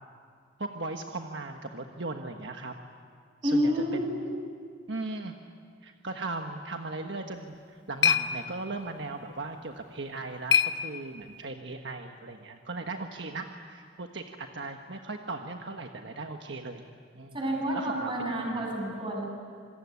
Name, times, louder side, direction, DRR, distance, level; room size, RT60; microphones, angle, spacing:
voice 1, 0.6-2.7 3.4-4.2 4.9-5.3 5.8-16.8 17.1-17.4 17.7-18.6, right 3 dB, 70° right, 4 dB, 1.4 m, -38 dB
voice 2, 3.4-4.4 17.3-19.2, equal, 25° right, 0 dB, 7.1 m, -29 dB
sound 1, 7.3-11.5, left 7 dB, 75° left, 1.1 m, -30 dB
27.0 x 22.5 x 9.7 m, 2.1 s
head